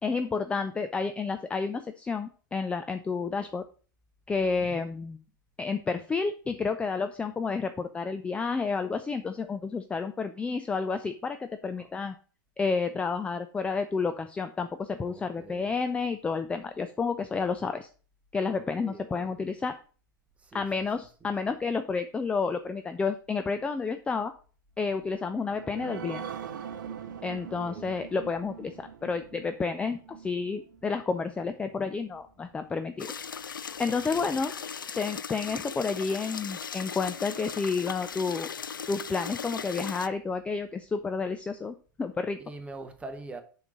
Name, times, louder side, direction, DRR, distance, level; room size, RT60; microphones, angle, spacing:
voice 1, 0.0-3.6 4.3-5.2 5.6-12.1 12.6-17.9 18.3-19.8 20.5-24.3 24.8-26.3 27.2-33.1 33.4-34.5 34.9-38.5 38.9-42.4, left 4 dB, 10° left, 0.4 m, -30 dB
voice 2, 15.1-15.7 18.5-19.4 20.4-20.9 21.2-21.3 27.5-27.9 33.8-34.4 42.4-43.4, right 3 dB, 10° right, 1.1 m, -45 dB
sound 1, 25.1-32.2 32.6-32.7 33.1-33.2, right 8 dB, 60° right, 0.8 m, -43 dB
sound 2, 33.0-40.1, left 7 dB, 75° left, 0.4 m, -38 dB
7.2 x 4.0 x 6.2 m
figure-of-eight pair, 95°, 11 cm